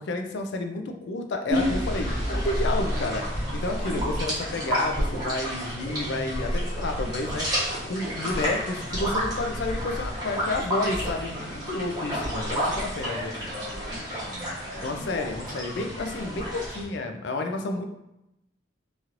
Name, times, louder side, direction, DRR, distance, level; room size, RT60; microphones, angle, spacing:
voice 1, 0.0-3.2 3.5-7.5 7.8-13.3 14.8-17.9, left 2 dB, 65° left, 5 dB, 0.4 m, -30 dB
sound 1, 1.5-16.8, equal, 20° right, 0.9 m, -30 dB
voice 2, 12.7-14.9 16.1-16.6 17.3-17.9, left 1 dB, 45° right, -6 dB, 0.6 m, -42 dB
3.0 x 2.9 x 2.4 m, 0.86 s
head